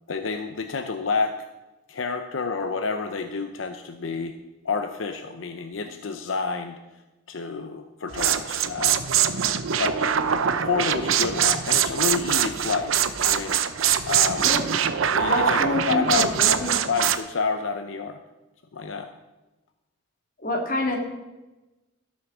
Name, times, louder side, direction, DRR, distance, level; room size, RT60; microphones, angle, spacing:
voice 1, 0.1-1.5 1.9-4.4 4.6-6.8 7.3-9.1 9.8-10.3 10.6-12.9 13.2-13.6 14.1-14.5 15.1-15.6 15.9-18.2 18.7-19.1, left 4 dB, 75° left, 7 dB, 0.6 m, -29 dB
sound 1, 8.1-17.2, right 8 dB, 85° right, 0.6 m, -23 dB
voice 2, 15.1-16.8 20.4-21.0, left 2 dB, 45° left, 1 dB, 1.9 m, -27 dB
13.0 x 6.4 x 6.0 m, 1.1 s
head